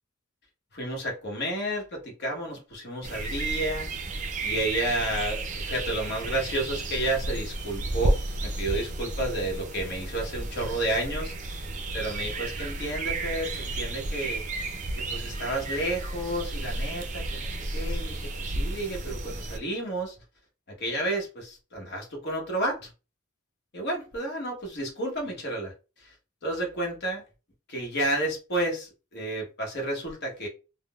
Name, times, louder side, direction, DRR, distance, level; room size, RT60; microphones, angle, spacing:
voice 1, 0.7-3.9 4.4-14.4 15.1-20.2 20.8-22.9 23.7-25.7 26.0-26.1 26.4-27.2 27.7-30.5, right 1 dB, 55° left, 0 dB, 1.0 m, -31 dB
sound 1, 3.0-19.6, right 2 dB, 35° right, 0.4 m, -32 dB
3.5 x 2.0 x 2.3 m, 0.32 s
head